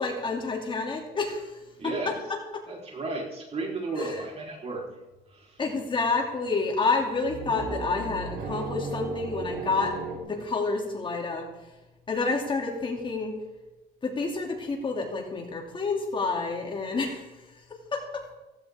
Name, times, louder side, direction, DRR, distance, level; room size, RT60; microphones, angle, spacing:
voice 1, 0.0-2.1 4.0-4.2 5.6-9.9 10.2-11.4 12.1-13.3 14.0-17.3 17.9-18.2, left 4 dB, 30° left, 1 dB, 2.8 m, -29 dB
voice 2, 1.8-2.1 2.7-4.9 5.3-5.6, right 2 dB, 35° right, -1 dB, 4.2 m, -33 dB
sound 1, 5.1-5.2 5.6-6.3 7.0-10.2, right 3 dB, 55° right, 3.8 m, -35 dB
16.5 x 16.0 x 3.7 m, 1.0 s
cardioid pair, 110°, 17 cm